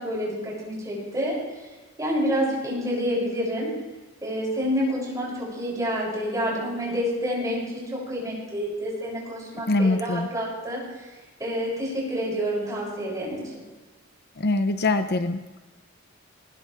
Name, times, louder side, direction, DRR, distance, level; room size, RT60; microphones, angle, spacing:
voice 1, 0.0-1.4 2.0-3.7 4.2-10.8 11.4-13.4, equal, 15° right, -5 dB, 7.3 m, -28 dB
voice 2, 9.7-10.3 14.4-15.4, left 2 dB, 50° left, 9 dB, 0.8 m, -23 dB
20.0 x 19.5 x 3.5 m, 1.2 s
head